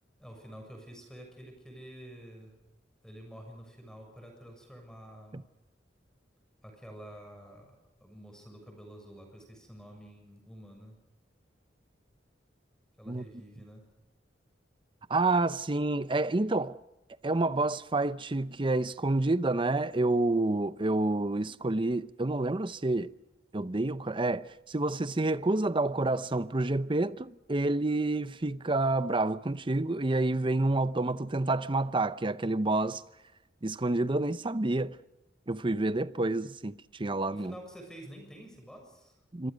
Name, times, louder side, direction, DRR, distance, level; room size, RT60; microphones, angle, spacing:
voice 1, 0.2-2.6 3.0-5.5 6.6-11.0 13.0-13.9 37.3-39.2, equal, 5° left, 7.0 m, -48 dB
voice 2, 15.1-16.8 17.2-23.1 23.5-33.0 33.6-35.0 35.5-37.5 39.3-39.5, right 2 dB, 25° right, 0.7 m, -28 dB
27.5 x 25.0 x 5.2 m
head